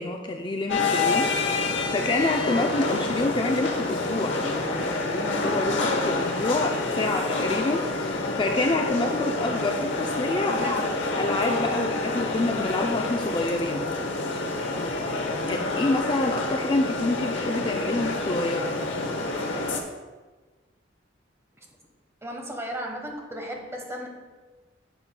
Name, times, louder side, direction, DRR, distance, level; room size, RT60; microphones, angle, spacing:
voice 1, 0.0-1.3 1.9-10.8 11.1-13.9 15.4-18.7, left 2 dB, 25° left, 2 dB, 0.4 m, -27 dB
sound 1, 0.7-19.8, left 2 dB, 70° left, 0.8 m, -28 dB
voice 2, 10.5-11.0 22.2-24.1, equal, 15° right, 1 dB, 1.0 m, -35 dB
9.8 x 7.1 x 2.2 m, 1.3 s
head